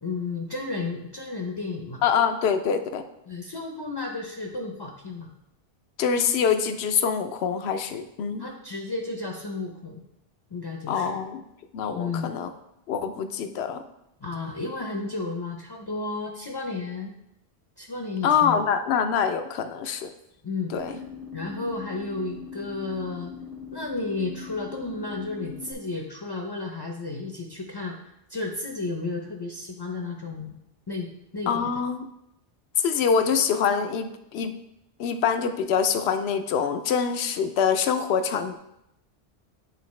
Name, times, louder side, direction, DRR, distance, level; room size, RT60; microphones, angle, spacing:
voice 1, 0.0-2.0 3.3-5.3 8.4-10.0 10.5-11.2 11.9-12.3 14.2-17.1 17.8-18.6 20.4-20.9 21.3-23.3 23.7-28.0 28.3-30.6 30.9-31.7, left 3 dB, 30° left, 1 dB, 0.5 m, -33 dB
voice 2, 2.0-3.0 6.0-8.5 10.9-11.4 11.7-12.5 12.9-13.8 18.2-20.1 20.7-21.0 31.5-32.1 32.8-34.6 35.0-38.6, left 7 dB, 80° left, 9 dB, 0.8 m, -25 dB
sound 1, 20.7-25.7, left 6 dB, 55° right, 1.6 m, -41 dB
8.3 x 3.9 x 3.1 m, 0.83 s
omnidirectional pair, 1.1 m